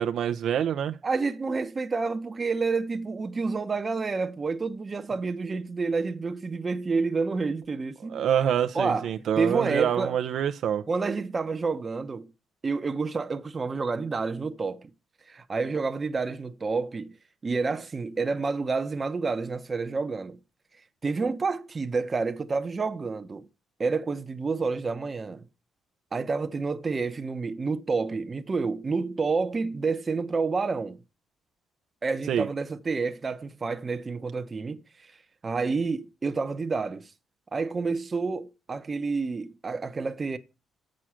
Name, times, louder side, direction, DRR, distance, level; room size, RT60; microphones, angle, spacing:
voice 1, 0.0-1.0 8.1-10.8 32.3-32.5, right 9 dB, 70° right, 0.6 m, -26 dB
voice 2, 1.0-8.2 8.7-9.1 9.4-10.2 10.9-12.3 12.6-14.9 15.3-17.1 17.4-20.4 21.0-23.5 23.8-25.5 26.1-31.0 32.0-34.8 35.4-37.0 37.5-40.4, right 4 dB, 30° right, 0.8 m, -29 dB
7.6 x 6.3 x 5.8 m
cardioid pair, 90°, 0 cm